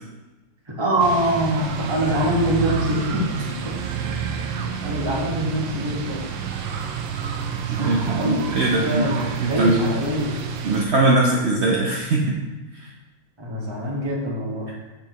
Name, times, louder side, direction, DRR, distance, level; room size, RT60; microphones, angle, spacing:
voice 1, 0.7-3.3 3.6-3.8 4.0-4.3 4.8-6.3 7.4-10.5 13.4-14.7, equal, 20° right, -2 dB, 0.8 m, -24 dB
sound 1, 1.0-10.9, right 7 dB, 90° right, 1.4 m, -29 dB
voice 2, 7.7-9.7 10.6-12.3 12.8-12.9, right 2 dB, 70° right, -3 dB, 0.6 m, -21 dB
7.3 x 6.2 x 3.0 m, 1.1 s
omnidirectional pair, 2.0 m